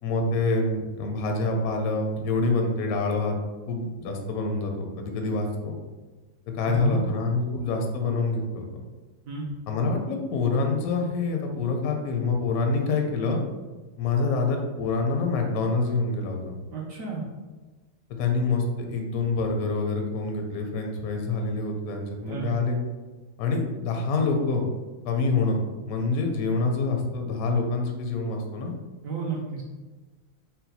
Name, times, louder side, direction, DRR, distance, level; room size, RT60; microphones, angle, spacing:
voice 1, 0.0-3.4 3.7-5.7 6.5-8.7 9.7-13.4 14.0-16.5 18.2-22.8 23.4-24.6 25.0-25.6 25.8-28.7, left 3 dB, 75° left, 3 dB, 0.8 m, -26 dB
voice 2, 6.6-7.0 9.3-9.5 16.7-17.2 22.3-22.6 29.0-29.6, right 4 dB, 85° right, -3 dB, 0.7 m, -31 dB
4.1 x 2.2 x 4.0 m, 1.3 s
omnidirectional pair, 2.2 m